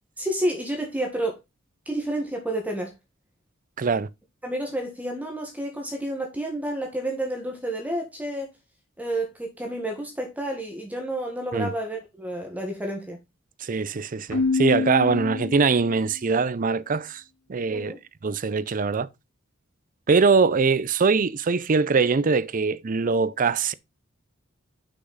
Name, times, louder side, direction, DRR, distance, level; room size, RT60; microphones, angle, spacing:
voice 1, 0.2-1.4 1.8-2.9 4.4-8.5 9.0-13.2 17.7-18.0, right 1 dB, 10° right, 1.5 m, -30 dB
voice 2, 3.8-4.1 11.5-11.7 13.6-17.2 17.5-17.9 18.2-19.1 20.1-23.7, right 4 dB, 45° right, 0.5 m, -22 dB
Keyboard (musical), 14.3-16.1, left 4 dB, 85° left, 1.6 m, -27 dB
6.4 x 5.8 x 4.0 m
head